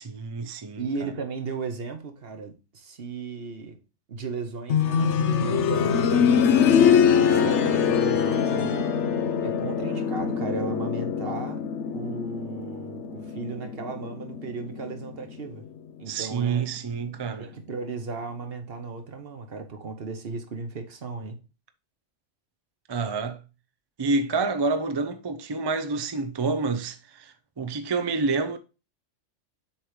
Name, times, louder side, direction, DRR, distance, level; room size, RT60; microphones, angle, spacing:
voice 1, 0.0-1.1 16.1-17.5 22.9-23.4 24.0-28.6, right 4 dB, 35° right, 0.4 m, -28 dB
voice 2, 0.8-3.8 4.1-6.7 7.3-8.9 9.4-11.6 11.9-15.6 16.0-16.7 17.4-21.4, right 4 dB, 55° right, 1.2 m, -35 dB
sound 1, 4.7-15.5 16.8-16.9, left 7 dB, 75° left, 0.9 m, -23 dB
7.2 x 3.1 x 5.0 m
omnidirectional pair, 1.2 m